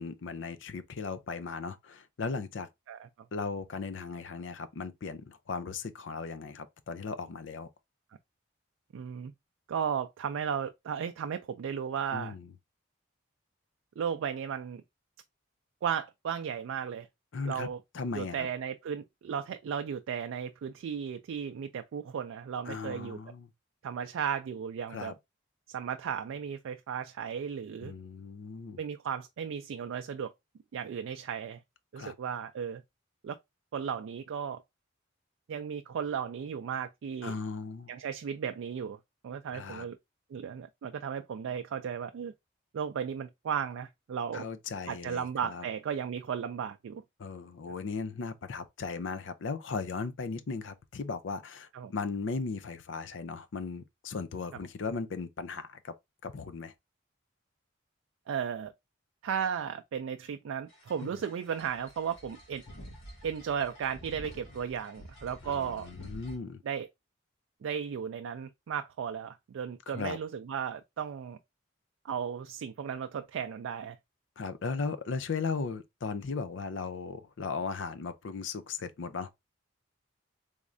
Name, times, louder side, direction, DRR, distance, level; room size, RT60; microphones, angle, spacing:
voice 1, 0.0-2.7 3.3-7.7 12.1-12.5 17.3-17.7 17.9-18.5 22.7-23.5 24.9-25.1 27.8-28.8 32.0-32.1 37.2-37.9 39.5-39.9 44.3-45.7 47.2-55.9 56.2-56.7 65.4-66.6 69.9-70.2 74.4-79.3, left 4 dB, 70° left, 0.4 m, -37 dB
voice 2, 8.9-9.3 9.7-12.4 14.0-14.8 15.8-17.1 17.4-17.8 18.1-23.2 23.8-25.1 25.7-27.9 28.8-30.3 30.7-31.6 31.9-32.8 33.2-33.4 33.7-34.6 35.5-37.3 37.9-39.0 39.2-40.0 40.3-42.3 42.7-44.5 44.9-47.0 51.7-51.9 58.3-58.7 59.2-62.6 63.2-65.9 66.7-66.9 67.6-71.4 72.0-74.0, right 7 dB, 80° right, 0.3 m, -35 dB
sound 1, 60.7-66.4, equal, 85° left, 1.4 m, -49 dB
3.5 x 3.1 x 2.5 m
head